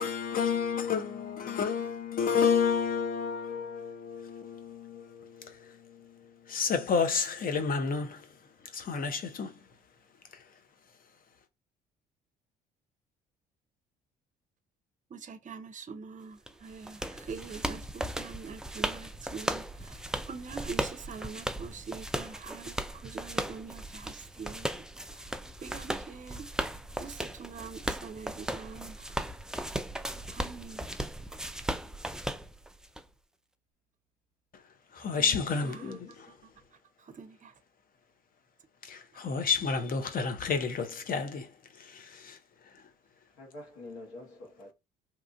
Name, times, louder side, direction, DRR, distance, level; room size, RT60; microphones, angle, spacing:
voice 1, 0.0-5.3 6.5-8.2 8.7-9.5 35.0-36.1 38.9-41.5 41.9-42.4, left 6 dB, 45° left, 0.7 m, -30 dB
voice 2, 15.1-24.7 25.1-25.3 25.6-26.7 27.0-29.1 30.3-30.8 35.6-36.0 37.0-37.5, right 5 dB, 40° right, 0.7 m, -44 dB
sound 1, 16.5-33.0, right 1 dB, 5° right, 0.4 m, -37 dB
voice 3, 35.0-36.3 43.4-44.7, left 2 dB, 80° left, 1.4 m, -47 dB
3.0 x 2.4 x 2.4 m
hypercardioid pair, 60°, 21 cm